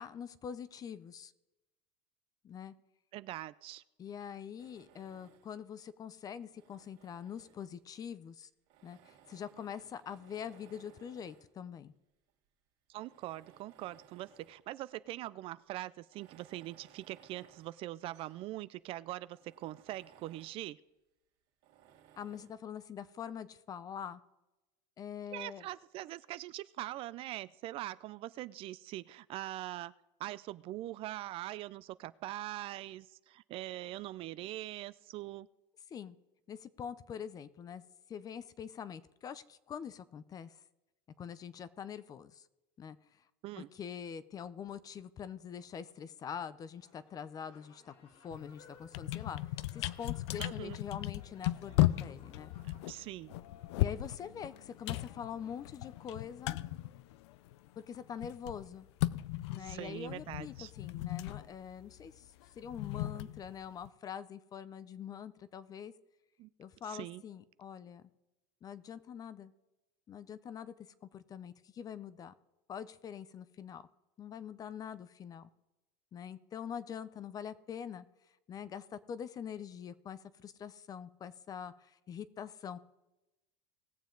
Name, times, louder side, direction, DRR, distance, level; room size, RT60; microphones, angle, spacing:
voice 1, 0.0-1.3 2.4-2.7 4.0-8.5 8.8-11.9 22.2-24.2 25.0-25.7 35.9-36.2 36.5-37.8 38.1-40.5 41.2-42.4 42.8-43.0 43.6-49.4 49.7-52.5 53.8-56.6 57.9-58.9 59.5-62.3 62.6-65.9 66.6-68.1 68.6-69.5 70.1-70.7 71.1-72.3 72.7-73.9 74.2-75.5 76.1-78.0 78.5-82.8, left 8 dB, 25° left, 17 dB, 0.5 m, -44 dB
voice 2, 3.1-3.8 12.9-20.8 25.3-29.9 30.2-35.5 43.4-43.7 50.4-50.8 52.6-53.4 59.6-60.7 66.4-66.5 66.9-67.2, right 16 dB, 40° right, 17 dB, 0.3 m, -42 dB
Tools, 4.6-5.7 6.4-8.0 8.7-11.6 12.3-12.4 12.9-14.7 15.0-15.1 16.0-18.5 18.9-19.0 19.3-20.7 21.6-22.6, right 10 dB, 60° right, 2.0 m, -63 dB
sound 1, 46.8-53.1, left 4 dB, 50° left, 2.7 m, -63 dB
sound 2, 48.3-48.5 48.8-57.7 57.9-63.9, left 16 dB, 85° left, 0.5 m, -36 dB
19.5 x 7.2 x 3.8 m, 1.0 s
supercardioid pair, 135°, 14 cm